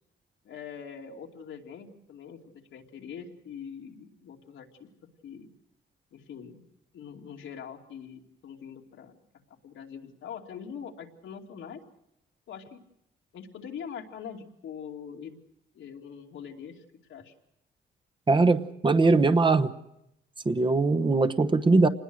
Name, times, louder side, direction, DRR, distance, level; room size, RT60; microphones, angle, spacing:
voice 1, 0.4-2.4 2.7-4.9 5.2-5.5 6.1-6.6 6.9-9.1 9.5-11.8 12.5-12.8 13.3-15.4 15.7-16.8 17.1-17.3, left 7 dB, 85° left, 1 dB, 2.7 m, -43 dB
voice 2, 18.3-19.7 20.4-21.9, right 3 dB, 25° right, 10 dB, 1.0 m, -21 dB
26.5 x 20.0 x 6.4 m, 0.82 s
cardioid pair, 125°, 20 cm